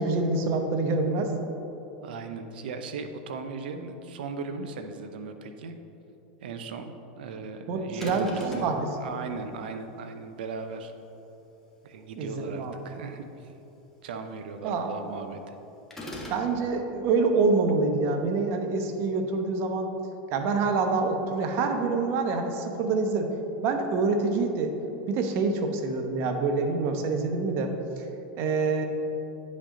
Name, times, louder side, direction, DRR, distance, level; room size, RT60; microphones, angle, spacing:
voice 1, 0.0-1.3 7.7-8.3 8.6-8.9 12.2-12.7 14.6-14.9 16.3-19.9 20.3-23.3 23.6-24.7 25.1-27.7 28.3-28.9, right 3 dB, 50° right, 5 dB, 0.9 m, -26 dB
voice 2, 2.0-5.7 6.4-10.9 11.8-13.5 14.0-15.6, right 4 dB, 80° right, 8 dB, 0.7 m, -37 dB
sound 1, 8.0-8.8 15.9-16.5, left 1 dB, 5° left, 1.5 m, -39 dB
9.7 x 5.3 x 3.8 m, 3.0 s
hypercardioid pair, 115°, 5 cm